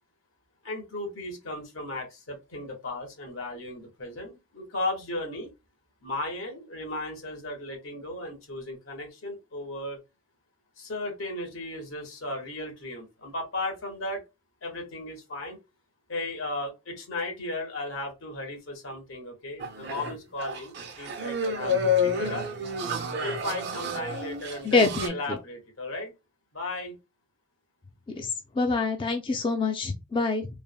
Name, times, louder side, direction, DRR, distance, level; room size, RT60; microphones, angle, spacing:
voice 1, 0.6-5.5 6.0-10.0 10.8-14.2 14.6-15.6 16.1-22.5 23.2-26.1 26.5-27.0, left 2 dB, 80° left, 1.1 m, -35 dB
sound 1, 19.6-25.1, left 3 dB, 55° right, 0.5 m, -29 dB
voice 2, 24.6-25.1 28.2-28.3 28.6-30.5, left 3 dB, 25° left, 0.3 m, -25 dB
3.3 x 2.1 x 2.3 m
head